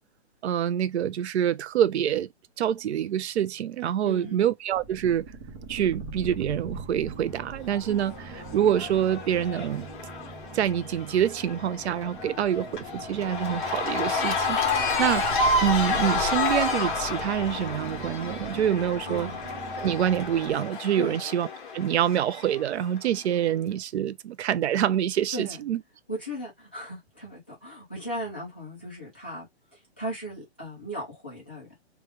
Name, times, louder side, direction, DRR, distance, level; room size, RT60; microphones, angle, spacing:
voice 1, 0.4-2.3 2.6-5.3 5.7-9.9 10.5-19.3 19.8-21.5 21.7-25.8, right 10 dB, 75° right, 0.5 m, -26 dB
voice 2, 4.0-4.5 19.1-19.4 21.0-21.2 25.3-25.6 26.1-29.5 29.7-31.7, right 1 dB, 10° left, 0.4 m, -36 dB
sound 1, 4.7-20.5, right 3 dB, 30° right, 0.9 m, -40 dB
Cheering / Crowd, 7.7-23.0, left 3 dB, 45° left, 1.1 m, -30 dB
3.1 x 2.3 x 3.2 m
hypercardioid pair, 170°, 33 cm